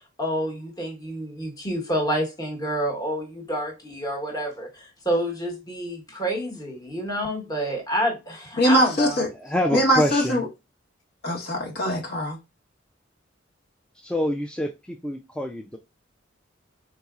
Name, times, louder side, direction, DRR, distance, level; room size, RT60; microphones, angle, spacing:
voice 1, 0.2-9.2, equal, 20° left, 1.1 m, -28 dB
voice 2, 8.6-9.3 9.7-10.4 11.2-12.4, equal, 55° left, 1.2 m, -22 dB
voice 3, 9.3-10.4 14.0-15.8, equal, 5° left, 0.3 m, -26 dB
4.2 x 3.8 x 2.4 m
head